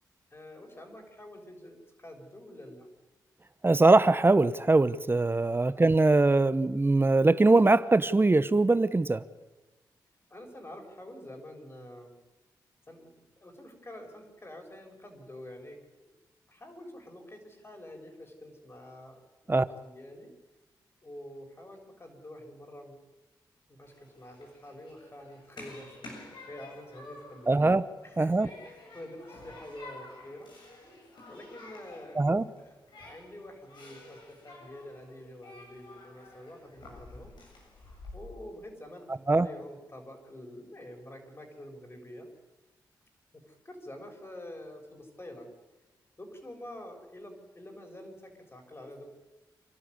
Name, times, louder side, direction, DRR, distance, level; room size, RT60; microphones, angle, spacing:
voice 1, 0.3-2.9 5.7-6.0 10.3-12.1 12.9-13.1 13.4-16.1 16.5-20.3 21.0-23.0 23.7-27.7 28.0-30.5 31.3-32.2 32.6-37.3 38.1-42.3 43.3-45.5 46.2-49.1, left 1 dB, 30° left, 3 dB, 7.0 m, -47 dB
voice 2, 3.6-9.2 19.5-19.6 27.5-27.8 28.2-28.5 32.2-32.4 39.3-39.5, right 2 dB, 30° right, 15 dB, 1.0 m, -22 dB
Human group actions, 23.8-38.1, left 2 dB, 75° left, 7.4 m, -50 dB
27.0 x 12.5 x 9.8 m, 1.1 s
cardioid pair, 50°, 8 cm